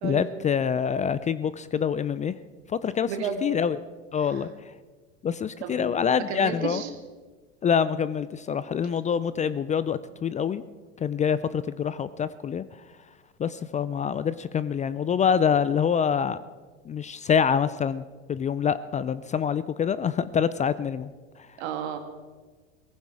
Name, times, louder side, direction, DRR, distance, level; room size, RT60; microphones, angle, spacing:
voice 1, 0.0-2.3 2.7-3.1 3.4-3.8 4.1-4.5 5.2-6.8 7.6-10.6 11.0-12.6 13.4-16.4 16.9-18.0 18.3-21.1, left 7 dB, 20° left, 16 dB, 0.5 m, -25 dB
voice 2, 3.1-3.4 4.2-4.4 5.6-5.9 6.3-6.9 21.6-22.0, right 7 dB, 65° right, 6 dB, 2.3 m, -32 dB
18.0 x 15.0 x 4.8 m, 1.4 s
hypercardioid pair, 90°, 35 cm